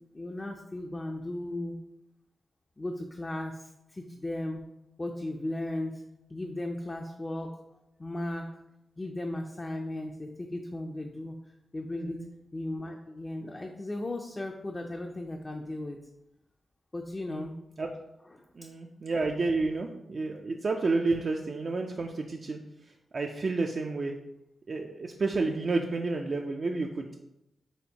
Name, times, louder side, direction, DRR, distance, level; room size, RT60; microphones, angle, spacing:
voice 1, 0.0-1.8 2.8-4.6 5.0-6.0 6.3-7.6 8.0-8.5 9.0-11.4 11.7-12.2 12.5-16.0 16.9-17.5 18.3-18.4, left 1 dB, 25° left, 2 dB, 0.4 m, -36 dB
voice 2, 11.9-12.3 17.3-17.5 17.8-17.9 18.6-22.6 23.1-24.2 24.7-27.1, right 3 dB, 50° right, 2 dB, 0.3 m, -30 dB
4.3 x 3.7 x 2.8 m, 0.87 s
wide cardioid pair, 95°, 0 cm